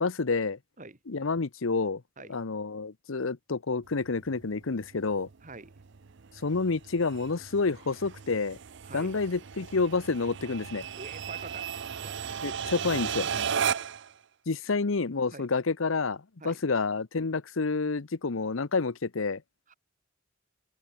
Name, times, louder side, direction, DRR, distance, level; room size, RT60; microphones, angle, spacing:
voice 1, 0.0-0.6 1.1-2.0 2.3-5.3 6.4-8.6 8.9-10.9 12.4-13.3 14.5-19.4, left 4 dB, 75° left, 0.8 m, -29 dB
sound 1, 3.9-14.1, right 7 dB, 60° right, 0.6 m, -36 dB
voice 2, 5.4-5.7 8.8-9.2 10.9-11.7 12.0-12.2 13.7-13.9 15.3-15.5 16.4-16.6 19.7-19.8, right 3 dB, 40° right, 3.0 m, -45 dB
head